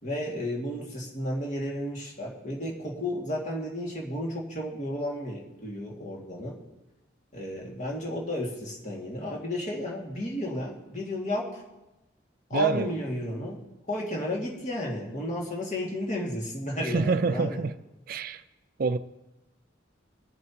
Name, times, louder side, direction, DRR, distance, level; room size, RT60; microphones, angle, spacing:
voice 1, 0.0-6.6 7.3-11.6 12.5-13.6 13.9-17.6, left 1 dB, 40° left, 2.2 m, -33 dB
voice 2, 12.5-12.9 16.8-17.7 18.1-18.4 18.8-19.0, right 4 dB, 50° right, 0.4 m, -26 dB
23.5 x 7.8 x 2.9 m
head